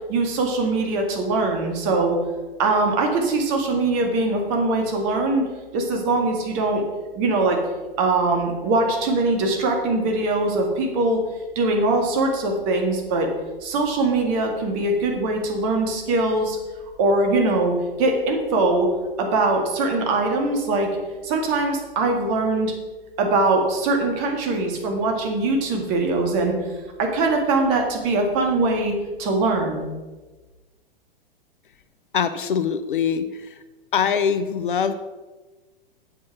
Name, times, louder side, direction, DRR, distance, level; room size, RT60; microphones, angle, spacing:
voice 1, 0.1-2.2 2.6-5.4 5.7-6.8 7.1-7.6 8.0-11.2 11.6-13.3 13.6-16.6 17.0-18.9 19.2-20.9 21.2-22.7 23.2-26.6 27.0-29.8, right 2 dB, 35° right, 2 dB, 2.0 m, -22 dB
voice 2, 32.1-33.6 33.9-34.9, left 7 dB, 60° left, 11 dB, 0.7 m, -23 dB
7.9 x 7.4 x 5.9 m, 1.2 s
figure-of-eight pair, 105°, 29 cm